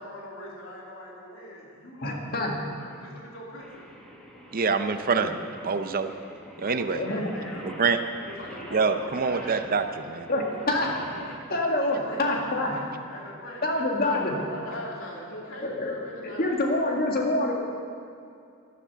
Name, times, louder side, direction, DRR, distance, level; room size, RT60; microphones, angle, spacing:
voice 1, 0.0-2.2 2.8-3.8 6.5-7.7 8.2-9.7 10.4-12.2 12.6-12.8 13.1-17.2, left 1 dB, 70° left, -3 dB, 3.2 m, -41 dB
voice 2, 2.0-2.6 6.9-7.3 10.3-10.9 11.5-12.7 13.6-14.4 15.6-17.5, left 2 dB, 45° left, 0 dB, 2.0 m, -26 dB
Singing, 3.6-11.4, equal, 5° left, 1.7 m, -47 dB
voice 3, 4.5-5.4 5.6-6.1 6.6-7.0 7.6-8.0 8.7-10.3, right 5 dB, 45° right, 8 dB, 0.6 m, -25 dB
12.0 x 11.5 x 6.8 m, 2.5 s
head